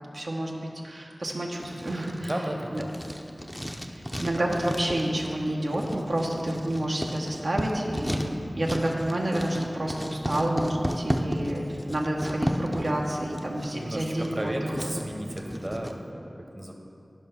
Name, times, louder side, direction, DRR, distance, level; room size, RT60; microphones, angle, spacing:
voice 1, 0.1-2.3 2.7-2.8 3.9-11.6 11.9-15.0, right 1 dB, 65° right, -2 dB, 0.9 m, -29 dB
Writing, 1.6-15.9, equal, 5° left, 0.6 m, -34 dB
voice 2, 2.2-2.9 8.1-8.4 13.7-16.7, right 1 dB, 30° right, 0 dB, 1.1 m, -34 dB
11.0 x 5.5 x 5.6 m, 2.6 s
wide cardioid pair, 75°, 0 cm